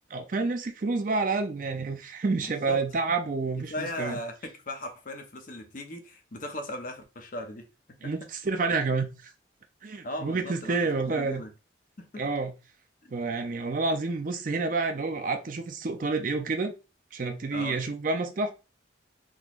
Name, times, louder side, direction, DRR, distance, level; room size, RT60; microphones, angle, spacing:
voice 1, 0.1-4.2 8.0-9.3 9.8-11.4 12.1-12.5 13.1-16.7 17.1-18.5, right 3 dB, 45° right, 0.5 m, -29 dB
voice 2, 2.5-2.8 3.7-7.6 8.0-8.1 10.0-10.8 11.1-11.5 12.0-12.2 13.0-13.1 17.5-17.8, left 1 dB, 45° left, 0.7 m, -37 dB
3.7 x 3.0 x 2.4 m
head